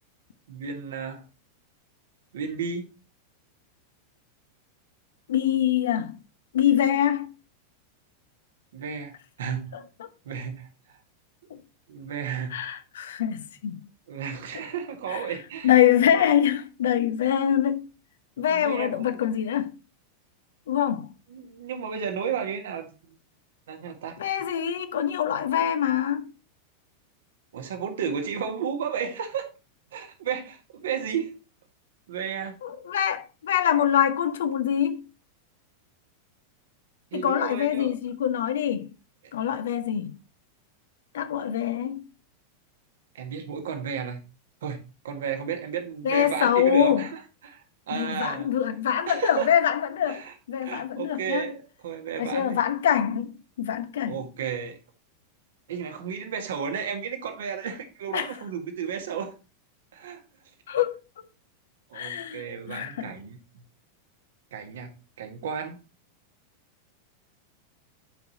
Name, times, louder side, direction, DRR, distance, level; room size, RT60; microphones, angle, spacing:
voice 1, 0.5-1.2 2.3-2.9 8.7-9.1 9.4-9.7 10.3-10.7 11.9-12.8 14.1-15.7 16.2-16.4 18.4-19.2 21.3-23.2 23.7-24.2 27.5-29.5 29.9-31.4 32.1-32.5 37.1-37.9 43.2-44.2 44.6-47.1 47.4-48.5 49.1-49.5 50.1-50.3 50.6-52.6 54.0-54.8 55.7-59.3 59.9-60.2 61.9-63.4 64.5-64.9 65.2-65.8, right 7 dB, 60° right, 1.7 m, -33 dB
voice 2, 5.3-6.2 6.5-7.3 9.7-10.1 11.5-11.6 12.5-13.8 15.1-15.2 15.6-17.9 18.4-19.7 20.7-21.1 24.2-26.3 32.6-35.0 37.1-38.9 39.3-40.1 41.1-42.1 46.0-47.1 47.9-51.5 52.2-53.3 53.6-54.2 58.1-58.3 60.7-61.0 61.9-63.1, left 10 dB, 60° left, 0.9 m, -24 dB
10.5 x 5.5 x 2.8 m
figure-of-eight pair, 90°, 0 cm